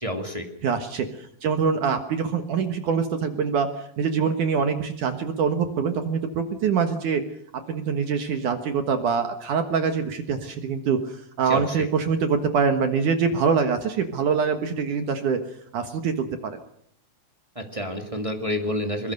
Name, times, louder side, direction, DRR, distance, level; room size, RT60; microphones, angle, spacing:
voice 1, 0.0-0.4 11.5-11.9 17.5-19.1, equal, 35° right, 4 dB, 0.5 m, -29 dB
voice 2, 0.6-7.2 7.7-15.4 15.7-16.6, right 6 dB, 60° right, 7 dB, 2.4 m, -24 dB
22.5 x 22.0 x 6.6 m, 0.65 s
omnidirectional pair, 4.9 m